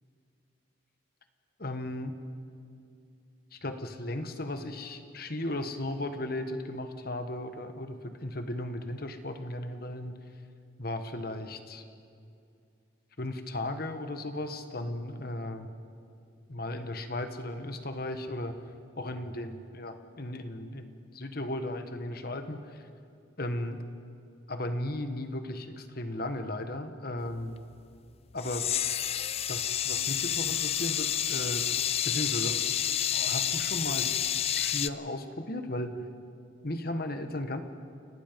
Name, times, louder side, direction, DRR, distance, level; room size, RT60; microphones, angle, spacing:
voice 1, 1.6-2.1 3.5-10.2 10.8-11.8 13.2-15.7 16.5-18.6 19.0-22.9 23.4-23.8 24.5-27.6 28.3-28.7 29.5-31.6 32.0-32.6 33.1-34.2 34.5-35.9 36.6-37.6, left 1 dB, 50° left, 8 dB, 1.4 m, -36 dB
sound 1, 28.4-34.9, left 10 dB, 30° left, 0.4 m, -29 dB
29.0 x 18.0 x 5.3 m, 2.4 s
head